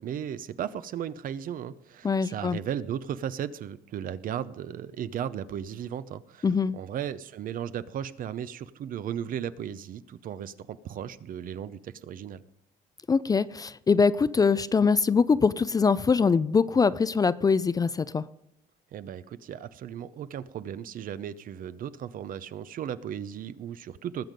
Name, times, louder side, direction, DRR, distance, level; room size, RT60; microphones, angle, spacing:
voice 1, 0.0-6.5 6.7-12.4 18.9-24.3, right 9 dB, 55° right, 15 dB, 0.7 m, -36 dB
voice 2, 2.0-2.6 6.4-6.7 13.1-18.2, left 5 dB, 20° left, 16 dB, 0.4 m, -23 dB
19.5 x 7.5 x 5.2 m, 0.79 s
cardioid pair, 110°, 17 cm